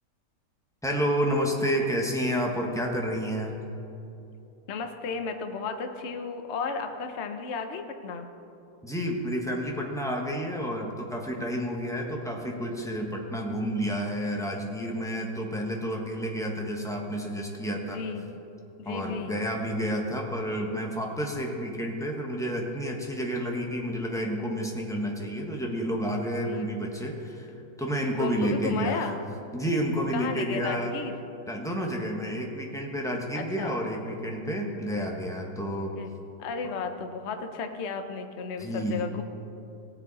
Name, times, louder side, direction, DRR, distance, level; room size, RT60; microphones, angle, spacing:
voice 1, 0.8-3.5 8.8-18.0 18.8-27.5 27.8-29.1 29.5-30.9 31.5-35.9 38.6-39.1, equal, ahead, -1 dB, 0.8 m, -30 dB
voice 2, 4.7-8.3 17.9-18.3 18.8-19.4 26.4-26.7 28.2-29.2 30.1-31.1 33.3-33.8 35.9-36.1 36.4-39.2, left 5 dB, 50° left, 6 dB, 0.9 m, -34 dB
18.0 x 7.5 x 4.1 m, 2.8 s
omnidirectional pair, 1.9 m